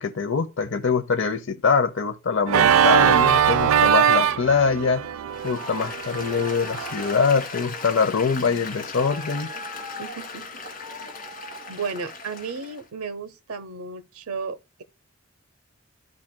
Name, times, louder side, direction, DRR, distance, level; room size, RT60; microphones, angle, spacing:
voice 1, 0.0-5.0 5.4-9.5, left 5 dB, 55° left, 0.7 m, -23 dB
Organ, 2.5-7.3, right 8 dB, 70° right, 0.3 m, -21 dB
Applause, 5.3-12.8, left 3 dB, 40° left, 1.8 m, -37 dB
voice 2, 10.0-10.6 11.0-11.2 11.7-14.8, right 5 dB, 85° right, 0.7 m, -34 dB
13.5 x 5.0 x 2.2 m
head